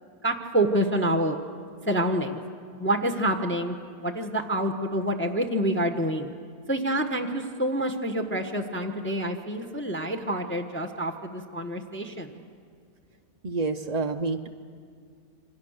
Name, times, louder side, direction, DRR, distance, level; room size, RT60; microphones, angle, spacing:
voice 1, 0.2-1.4 1.9-2.4 2.8-3.7 4.0-6.3 6.7-12.4, right 1 dB, 10° left, 5 dB, 1.2 m, -27 dB
voice 2, 13.4-14.5, right 3 dB, 50° right, 6 dB, 0.5 m, -28 dB
28.0 x 24.5 x 6.6 m, 2.1 s
omnidirectional pair, 1.6 m